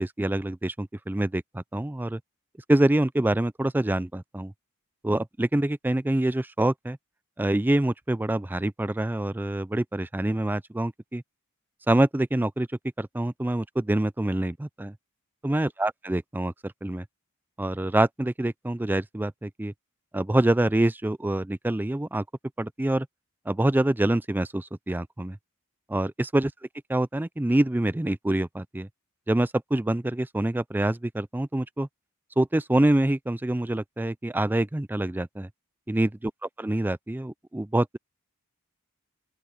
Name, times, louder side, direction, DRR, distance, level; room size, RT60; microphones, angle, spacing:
voice 1, 0.0-2.2 2.7-4.5 5.0-7.0 7.4-11.2 11.9-12.7 13.0-14.9 15.4-17.0 17.6-19.7 20.1-22.2 22.6-23.1 23.5-25.4 25.9-26.5 26.9-28.9 29.3-31.9 32.4-35.5 35.9-36.3 36.6-38.0, right 1 dB, 10° right, 0.4 m, -26 dB
open air
head